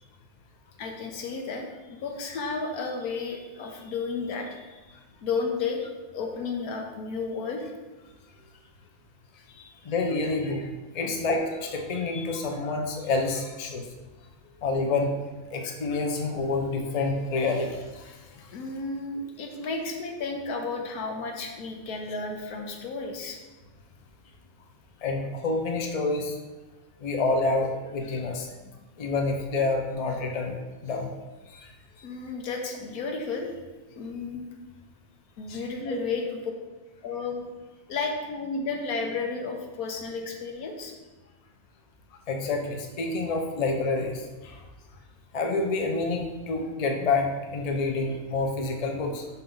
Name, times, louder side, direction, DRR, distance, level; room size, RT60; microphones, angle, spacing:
voice 1, 0.8-5.0 5.2-5.8 6.1-7.7 9.5-9.8 11.0-11.2 12.1-12.4 14.4-14.6 18.5-23.4 28.6-28.8 32.0-33.6 33.9-34.4 35.4-36.4 37.0-37.5 37.9-40.9, left 4 dB, 90° left, 2 dB, 1.4 m, -33 dB
voice 2, 9.8-10.7 10.9-13.8 14.6-15.1 15.5-18.2 25.0-26.3 27.0-28.5 29.0-30.5 30.8-31.1 31.5-31.7 35.5-35.6 35.9-36.0 42.3-44.6 45.3-49.2, left 3 dB, 40° left, 3 dB, 0.6 m, -28 dB
5.7 x 5.5 x 3.8 m, 1.2 s
omnidirectional pair, 1.5 m